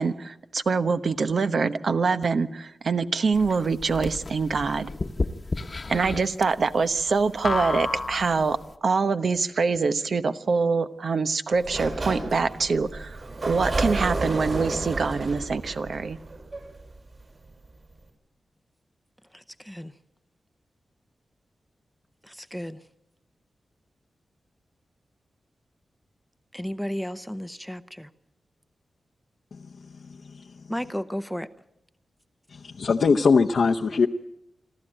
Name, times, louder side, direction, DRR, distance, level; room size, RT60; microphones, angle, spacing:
voice 1, 0.0-4.9 5.9-8.6 8.8-16.2, right 4 dB, 65° right, 11 dB, 1.0 m, -25 dB
sound 1, 3.3-8.6, left 3 dB, 40° left, 1.1 m, -31 dB
Sliding door, 11.5-17.2, right 2 dB, 45° right, 6.5 m, -31 dB
voice 2, 19.3-19.9 22.2-22.8 26.5-28.1 30.7-31.5, equal, ahead, 12 dB, 0.7 m, -33 dB
voice 3, 29.5-30.5 32.5-34.1, left 5 dB, 70° left, 3 dB, 0.8 m, -23 dB
27.0 x 13.0 x 8.9 m, 0.83 s
cardioid pair, 75°, 0 cm